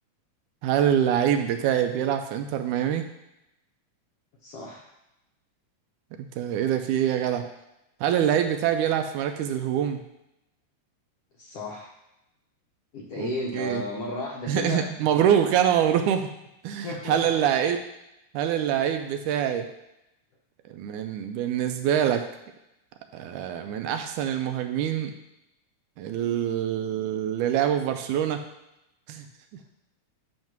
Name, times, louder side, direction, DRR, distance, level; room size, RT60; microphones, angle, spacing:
voice 1, 0.6-3.0 6.2-7.5 8.0-10.0 13.2-13.8 14.5-16.3 16.6-17.8 18.3-19.7 20.7-22.2 23.1-25.1 26.0-28.4 29.1-29.3, right 9 dB, 80° right, 7 dB, 2.0 m, -25 dB
voice 2, 4.4-4.9 11.4-11.9 12.9-14.8 16.8-17.5, left 2 dB, 75° left, -2 dB, 1.4 m, -34 dB
8.9 x 3.1 x 5.9 m, 0.90 s
omnidirectional pair, 3.7 m